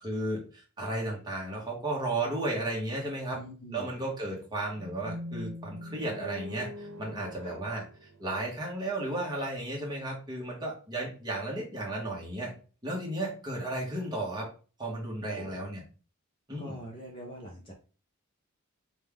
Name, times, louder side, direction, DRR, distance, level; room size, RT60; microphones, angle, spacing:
voice 1, 0.0-3.4 3.7-12.5 12.8-14.5 14.8-15.8 16.5-16.8, right 2 dB, 20° right, -2 dB, 1.3 m, -34 dB
voice 2, 3.3-3.9 7.4-7.6 15.3-15.6 16.6-17.7, equal, 25° left, 0 dB, 0.7 m, -43 dB
sound 1, 4.7-8.9, left 1 dB, 75° right, 0.9 m, -43 dB
5.1 x 2.4 x 3.5 m, 0.37 s
head